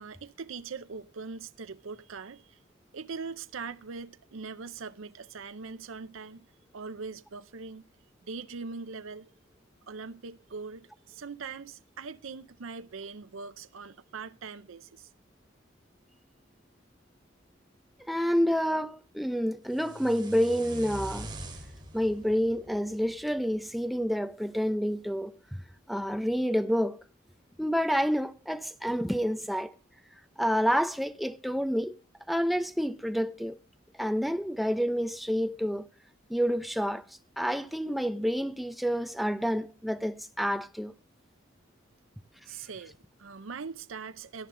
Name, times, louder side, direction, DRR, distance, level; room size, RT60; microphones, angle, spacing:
voice 1, 0.0-2.6 2.9-6.5 6.7-7.8 8.2-9.3 9.9-15.1 42.5-44.5, right 5 dB, 80° right, 0.6 m, -41 dB
voice 2, 18.1-21.3 21.9-25.4 25.9-27.0 27.6-29.7 30.4-32.0 32.3-33.6 34.0-35.8 36.3-37.0 37.4-40.9, equal, ahead, 0.6 m, -28 dB
sound 1, 19.7-23.8, right 1 dB, 20° right, 2.7 m, -43 dB
17.5 x 11.0 x 3.8 m
head